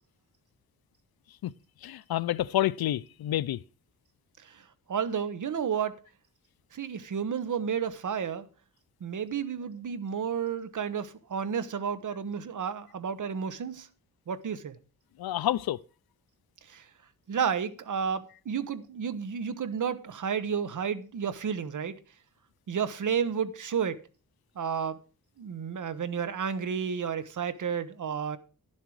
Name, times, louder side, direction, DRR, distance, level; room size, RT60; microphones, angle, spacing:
voice 1, 1.8-3.6 15.2-15.8, left 13 dB, 90° left, 0.5 m, -28 dB
voice 2, 4.4-5.9 6.7-8.5 9.0-13.9 14.3-14.8 16.7-16.9 17.3-22.0 22.7-24.0 24.6-25.0 25.4-28.4, right 7 dB, 55° right, 0.9 m, -31 dB
11.0 x 7.4 x 4.8 m
wide cardioid pair, 130°, 36 cm